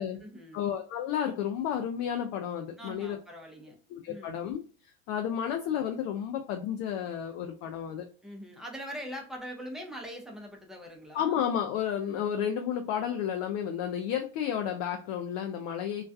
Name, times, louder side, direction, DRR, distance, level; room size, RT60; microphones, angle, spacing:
voice 1, 0.0-0.6 2.8-3.8 4.0-4.4 8.2-11.4 12.0-12.3, equal, ahead, 1 dB, 0.6 m, -42 dB
voice 2, 0.5-3.2 3.9-4.6 5.1-8.0 11.1-16.1, left 9 dB, 50° left, 4 dB, 0.4 m, -32 dB
2.3 x 2.2 x 2.5 m, 0.39 s
supercardioid pair, 110°, 33 cm